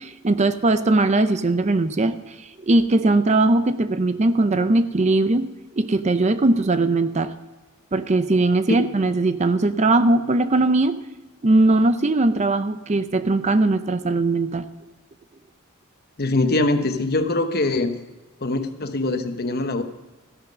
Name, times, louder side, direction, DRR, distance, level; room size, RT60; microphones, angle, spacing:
voice 1, 0.0-2.3 2.6-5.5 5.8-7.3 7.9-11.0 11.4-14.7, right 2 dB, 35° right, 12 dB, 0.5 m, -20 dB
voice 2, 16.2-18.0 18.4-19.8, left 2 dB, 50° left, 8 dB, 1.0 m, -23 dB
14.5 x 11.0 x 5.2 m, 1.1 s
head